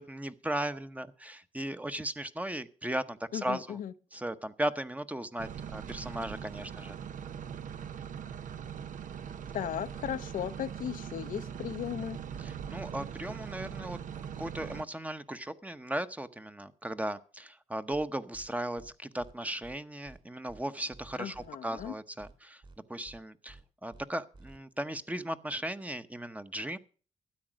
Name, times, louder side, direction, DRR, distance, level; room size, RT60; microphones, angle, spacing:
voice 1, 0.0-3.8 4.1-7.0 12.4-14.0 14.4-22.6 22.9-26.8, right 1 dB, 10° right, 0.8 m, -37 dB
voice 2, 3.3-3.9 9.5-12.2 21.2-21.9, left 10 dB, 85° left, 0.7 m, -36 dB
sound 1, 5.4-14.8, right 8 dB, 75° right, 0.7 m, -41 dB
sound 2, 17.9-18.1 18.3-18.5 18.8-18.9 19.2-19.3 19.6-19.8 20.1-20.2 20.5-20.6 20.9-21.5 21.8-21.9 22.2-22.3 22.6-22.8 23.1-23.2 23.5-23.6 23.9-24.1 24.3-24.6, right 2 dB, 40° right, 3.6 m, -53 dB
13.0 x 8.8 x 6.2 m
cardioid pair, 85°, 14 cm